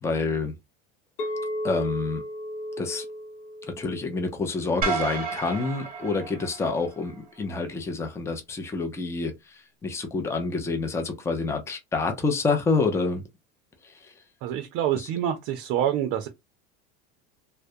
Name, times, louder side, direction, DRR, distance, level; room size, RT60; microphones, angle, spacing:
voice 1, 0.0-0.5 1.6-2.2 2.8-3.1 3.8-13.2 14.9-15.1, left 4 dB, 10° left, 0.5 m, -28 dB
Chink clink, 1.2-5.4, equal, 60° left, 1.0 m, -35 dB
sound 1, 4.8-7.2, right 4 dB, 30° right, 0.9 m, -31 dB
voice 2, 14.4-16.3, right 10 dB, 50° right, 0.5 m, -26 dB
2.2 x 2.1 x 2.6 m
supercardioid pair, 120°, 29 cm